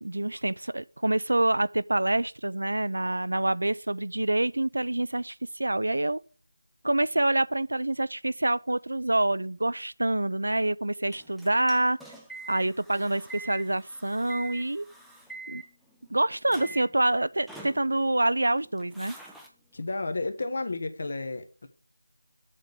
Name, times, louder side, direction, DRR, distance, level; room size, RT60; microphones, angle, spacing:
voice 1, 0.0-6.2 6.8-12.0 12.5-14.9 15.5-15.6 16.1-19.2, right 1 dB, 80° right, 0.3 m, -26 dB
sound 1, 11.0-16.1 16.5-17.1 17.5-18.2 18.6-19.5 20.4-20.5, right 2 dB, ahead, 0.5 m, -45 dB
voice 2, 19.7-21.7, left 3 dB, 50° left, 1.1 m, -32 dB
7.2 x 3.9 x 6.6 m
figure-of-eight pair, 170°, 0 cm